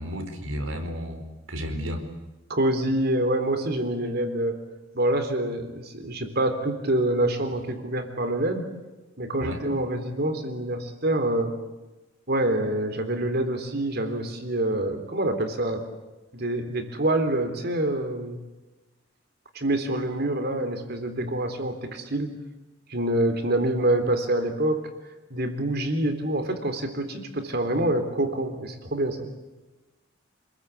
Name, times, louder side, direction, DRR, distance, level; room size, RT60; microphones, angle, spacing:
voice 1, 0.0-2.0 9.4-9.6, equal, 80° right, 6 dB, 4.7 m, -32 dB
voice 2, 2.5-4.6 4.9-8.7 9.2-11.5 12.3-15.8 16.3-18.4 19.6-22.4 22.9-24.9 25.3-29.3, right 1 dB, 55° right, 8 dB, 3.7 m, -26 dB
28.5 x 21.5 x 8.6 m, 1.1 s
head